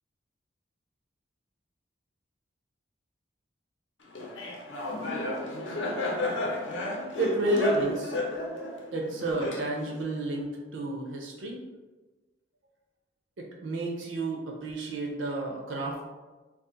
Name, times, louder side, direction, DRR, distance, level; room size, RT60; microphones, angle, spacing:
Laughter, 4.2-10.0, left 1 dB, 75° left, 0.6 m, -32 dB
voice 1, 7.2-8.2 8.9-11.6 13.4-16.0, right 2 dB, 85° right, -1 dB, 0.5 m, -31 dB
2.7 x 2.4 x 3.6 m, 1.2 s
head